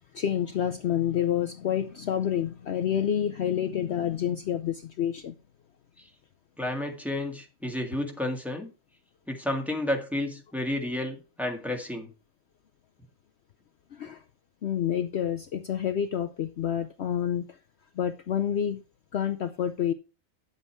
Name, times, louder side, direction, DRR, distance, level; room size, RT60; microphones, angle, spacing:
voice 1, 0.1-5.3 13.9-14.2 14.6-17.4 18.0-18.8 19.1-19.9, left 9 dB, 60° left, 0.9 m, -28 dB
voice 2, 6.6-8.7 9.3-12.1, left 1 dB, ahead, 1.8 m, -31 dB
9.8 x 8.0 x 4.5 m
omnidirectional pair, 1.4 m